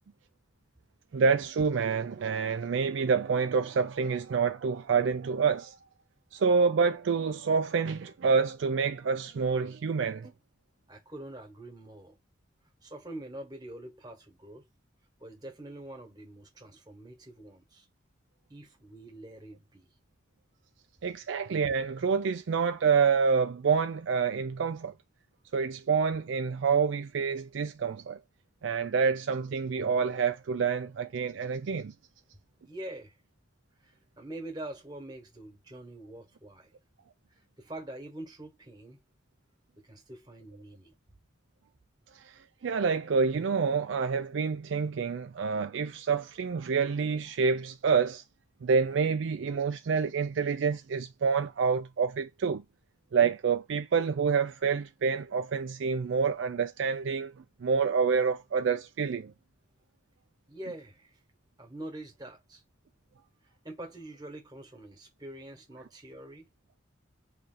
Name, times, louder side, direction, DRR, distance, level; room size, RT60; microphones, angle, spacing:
voice 1, 1.1-5.8 6.3-10.2 21.0-24.9 25.5-28.2 28.6-31.9 42.1-42.3 42.6-48.2 48.6-52.6 53.1-57.3 57.6-59.3, right 5 dB, 75° right, 0.4 m, -27 dB
voice 2, 10.9-12.2 12.8-14.6 15.2-17.9 18.5-19.9 32.6-33.1 33.8-36.7 37.3-39.0 39.8-40.9 60.5-61.2 61.6-62.6 63.6-66.5, right 1 dB, 20° right, 1.4 m, -45 dB
3.2 x 2.9 x 3.8 m
head